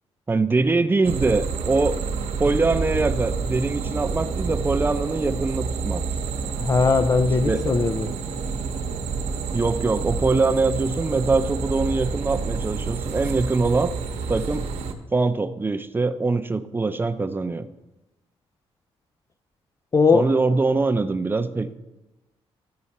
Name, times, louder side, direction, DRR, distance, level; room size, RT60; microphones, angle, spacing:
voice 1, 0.3-2.0 2.4-6.0 7.5-7.6 9.5-13.9 14.3-14.7 15.1-17.7 20.1-21.7, right 3 dB, 20° right, 8 dB, 0.6 m, -23 dB
sound 1, 1.0-14.9, right 5 dB, 85° right, 0.9 m, -28 dB
voice 2, 6.6-8.1 19.9-20.3, left 4 dB, 30° left, 9 dB, 0.5 m, -19 dB
13.5 x 4.8 x 4.2 m, 1.0 s
cardioid pair, 90°, 11 cm